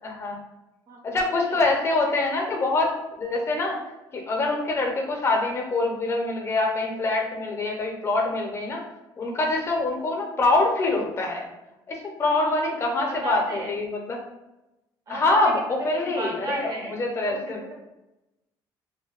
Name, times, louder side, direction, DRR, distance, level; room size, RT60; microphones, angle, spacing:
voice 1, 0.0-0.4 1.0-3.8 4.1-8.8 9.2-11.5 11.9-14.2 15.1-17.6, left 2 dB, 30° left, 0 dB, 0.6 m, -25 dB
voice 2, 12.2-12.8 13.1-13.8 15.1-15.5 15.8-17.0 17.3-17.7, right 2 dB, 40° right, 0 dB, 0.6 m, -35 dB
2.7 x 2.2 x 2.3 m, 0.97 s
cardioid pair, 115°, 9 cm